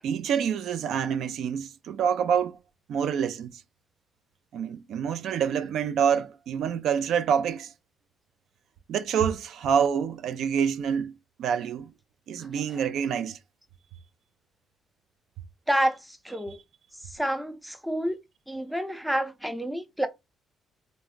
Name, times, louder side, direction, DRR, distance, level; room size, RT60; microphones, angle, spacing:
voice 1, 0.0-2.6 2.9-3.6 4.5-7.7 8.9-11.1 11.4-11.9 12.3-13.4, right 7 dB, 75° right, 0.3 m, -27 dB
voice 2, 15.7-16.6 17.1-18.2 18.5-20.1, equal, ahead, 0.5 m, -28 dB
3.3 x 2.0 x 2.3 m
cardioid pair, 95°, 0 cm